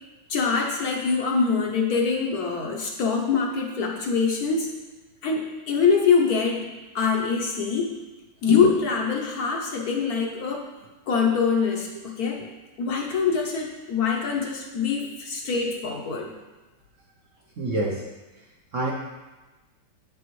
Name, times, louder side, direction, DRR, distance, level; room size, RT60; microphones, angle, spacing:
voice 1, 0.3-4.7 5.2-6.6 6.9-7.9 8.4-10.7 11.1-12.4 12.8-16.3, left 5 dB, 65° left, 1 dB, 1.1 m, -24 dB
voice 2, 17.6-18.0 18.7-18.9, right 2 dB, 60° right, -2 dB, 0.8 m, -27 dB
7.6 x 6.8 x 3.1 m, 1.2 s
omnidirectional pair, 2.0 m